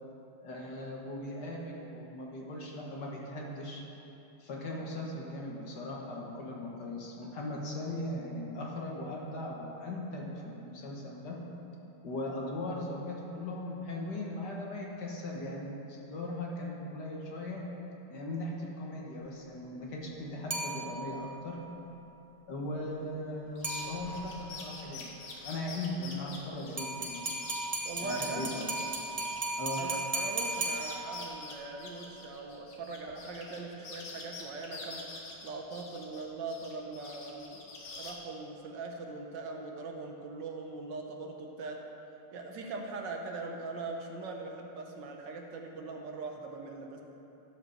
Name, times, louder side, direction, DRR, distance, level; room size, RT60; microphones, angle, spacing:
voice 1, 0.4-3.8 4.4-11.4 12.0-17.6 18.1-21.6 22.4-25.1 25.4-27.3 28.0-28.7 29.6-29.8, left 1 dB, 55° left, -2 dB, 1.8 m, -39 dB
sound 1, 20.5-21.3 23.6-24.4 26.8-31.4, right 2 dB, 35° right, 0.5 m, -36 dB
sound 2, 23.6-30.0 30.3-33.6 33.8-36.2 36.5-38.1, left 3 dB, 85° left, 2.1 m, -46 dB
voice 2, 27.8-28.5 29.7-35.0 35.4-37.7 37.9-41.8 42.3-47.0, right 3 dB, 65° right, 2 dB, 1.4 m, -41 dB
12.0 x 5.0 x 6.5 m, 3.0 s
omnidirectional pair, 2.4 m